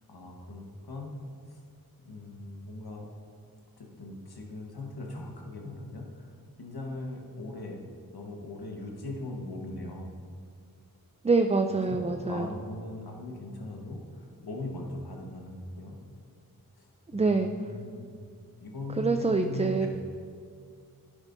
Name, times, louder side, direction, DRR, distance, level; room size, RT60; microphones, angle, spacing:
voice 1, 0.1-1.1 1.5-1.6 2.0-3.1 3.8-6.3 6.6-7.8 8.1-10.1 11.7-16.0 16.8-18.1 18.6-19.9, left 2 dB, 85° left, 0 dB, 1.3 m, -39 dB
voice 2, 11.2-12.5 17.1-17.5 19.0-19.9, right 3 dB, 20° right, 6 dB, 0.4 m, -25 dB
10.5 x 10.0 x 2.6 m, 2.1 s
wide cardioid pair, 80°, 37 cm